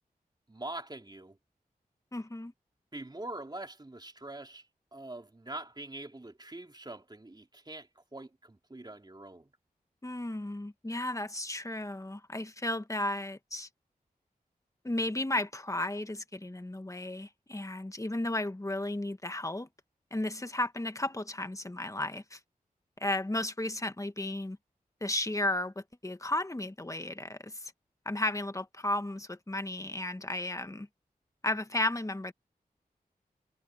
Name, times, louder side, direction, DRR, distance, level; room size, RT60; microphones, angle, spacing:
voice 1, 0.5-1.4 2.9-4.6 4.9-9.5, right 2 dB, 25° right, 3.0 m, -44 dB
voice 2, 2.1-2.5 10.0-13.7 14.8-19.7 20.1-22.4 23.0-24.6 25.0-27.7 28.0-30.9 31.4-32.3, left 1 dB, 20° left, 1.6 m, -34 dB
cardioid pair, 50°, 16 cm